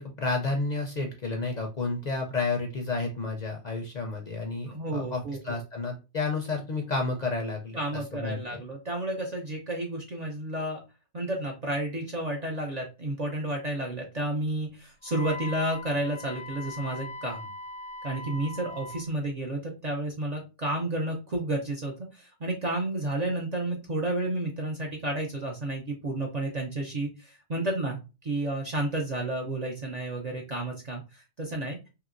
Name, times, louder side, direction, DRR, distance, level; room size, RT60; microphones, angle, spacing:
voice 1, 0.0-8.6, left 3 dB, 50° left, 2 dB, 0.5 m, -31 dB
voice 2, 4.7-5.6 7.7-10.8 11.1-17.5 18.0-31.8, right 1 dB, 50° right, 0 dB, 0.5 m, -31 dB
Wind instrument woodwind instrument, 15.0-19.1, left 3 dB, 75° left, 0.8 m, -40 dB
2.9 x 2.8 x 2.4 m, 0.29 s
omnidirectional pair, 1.2 m